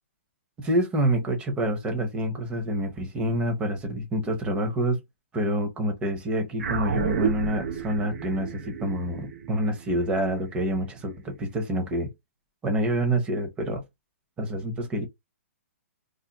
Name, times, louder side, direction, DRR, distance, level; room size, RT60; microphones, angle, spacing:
voice 1, 0.6-5.0 5.3-12.1 12.6-13.8 14.4-15.0, right 1 dB, 15° right, 0.8 m, -27 dB
sound 1, 6.6-11.2, right 7 dB, 85° right, 0.8 m, -32 dB
2.4 x 2.1 x 3.9 m
hypercardioid pair, 150°, 8 cm